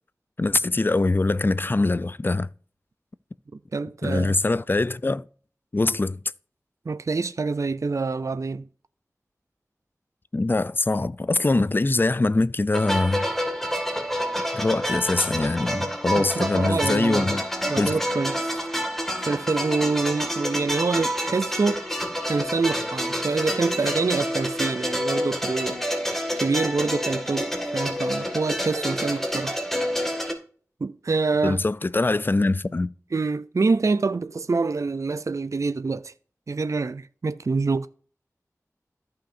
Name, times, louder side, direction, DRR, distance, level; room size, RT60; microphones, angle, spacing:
voice 1, 0.4-2.5 4.0-5.2 5.7-6.2 10.3-13.3 14.5-17.4 17.8-18.0 31.4-32.9, left 2 dB, 35° left, 0.4 m, -23 dB
voice 2, 3.7-4.3 6.9-8.6 16.2-17.4 17.7-18.5 19.2-21.9 22.3-25.8 26.4-29.5 30.8-31.6 33.1-36.1 36.5-37.9, right 4 dB, 60° right, 0.4 m, -26 dB
sound 1, 12.7-30.3, equal, 5° left, 2.0 m, -28 dB
14.0 x 5.7 x 2.6 m
wide cardioid pair, 45°, 6 cm